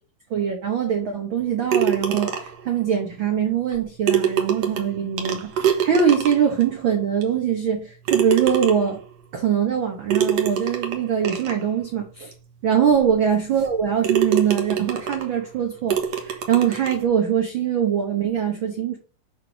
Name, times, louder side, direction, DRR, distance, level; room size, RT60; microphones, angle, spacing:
voice 1, 0.3-9.0 9.3-12.3 12.6-19.0, right 8 dB, 75° right, 1.1 m, -22 dB
sound 1, 1.7-2.7 3.7-6.6 7.2-7.3 8.1-9.0 10.1-11.6 12.3-12.4 12.9-13.0 13.6-13.7 14.0-15.3 15.9-17.0, right 8 dB, 60° right, 1.9 m, -24 dB
8.4 x 3.3 x 5.9 m
omnidirectional pair, 3.9 m